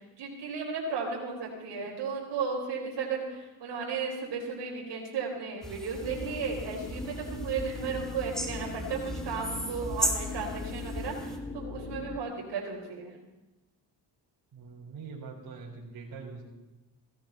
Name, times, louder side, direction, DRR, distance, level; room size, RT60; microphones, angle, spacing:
voice 1, 0.0-13.2, right 5 dB, 80° right, -2 dB, 4.1 m, -35 dB
sound 1, 5.6-11.4, equal, ahead, 2.0 m, -36 dB
sound 2, 6.0-12.2, left 4 dB, 30° left, 1.1 m, -40 dB
voice 2, 14.5-16.4, right 4 dB, 60° right, -4 dB, 3.9 m, -43 dB
17.5 x 14.0 x 4.4 m, 1.0 s
cardioid pair, 105°, 42 cm